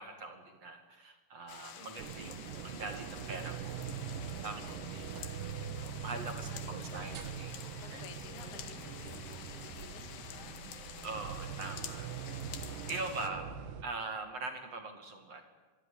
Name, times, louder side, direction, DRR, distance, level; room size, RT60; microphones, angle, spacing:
voice 1, 0.0-3.9 4.4-5.1 5.8-7.5 7.8-8.1 11.0-12.1 12.9-13.5 13.8-15.4, right 3 dB, 45° right, 6 dB, 2.4 m, -42 dB
sound 1, 1.5-13.3, left 9 dB, 65° left, 3.6 m, -49 dB
sound 2, 2.0-13.8, right 8 dB, 70° right, 2.2 m, -43 dB
sound 3, 2.4-11.1, left 2 dB, 25° left, 5.1 m, -55 dB
voice 2, 4.5-5.5 6.3-6.9 7.8-10.6 12.6-13.0, left 6 dB, 45° left, 6 dB, 3.7 m, -55 dB
25.5 x 23.0 x 10.0 m, 1.2 s
omnidirectional pair, 5.5 m